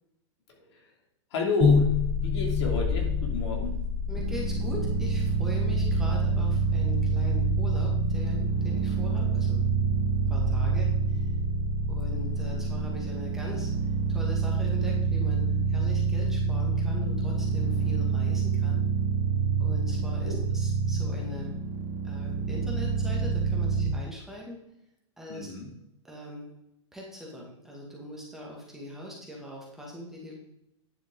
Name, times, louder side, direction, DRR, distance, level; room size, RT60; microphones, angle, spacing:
voice 1, 0.5-0.9 1.3-1.9 2.2-3.8 20.2-20.4 25.3-25.7, left 2 dB, 65° left, 1 dB, 2.7 m, -31 dB
sound 1, 1.6-13.7, left 6 dB, 15° left, 0.4 m, -30 dB
voice 2, 4.1-9.6 10.3-11.3 11.9-13.7 14.1-18.8 19.6-21.5 22.0-24.6 25.2-25.5 26.0-26.5 26.9-30.3, equal, 5° right, -4 dB, 2.0 m, -41 dB
sound 2, 4.2-23.9, right 5 dB, 35° right, 1.4 m, -27 dB
10.0 x 7.0 x 3.8 m, 0.83 s
supercardioid pair, 155°, 15 cm